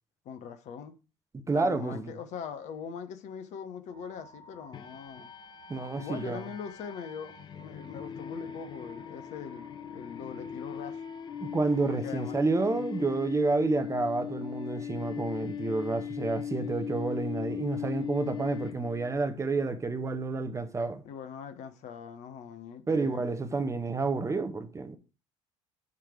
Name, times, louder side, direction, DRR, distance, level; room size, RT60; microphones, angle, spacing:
voice 1, 0.2-0.9 1.5-5.3 6.0-11.0 11.9-12.4 12.8-13.1 21.0-23.3, left 7 dB, 45° left, 0.9 m, -42 dB
voice 2, 1.5-2.1 5.7-6.4 11.4-21.0 22.9-25.0, right 3 dB, 20° right, 0.8 m, -29 dB
sound 1, 3.9-12.0, equal, 85° left, 4.1 m, -53 dB
sound 2, 4.7-19.2, left 9 dB, 30° left, 0.4 m, -39 dB
9.4 x 3.3 x 4.8 m
figure-of-eight pair, 55°, 16 cm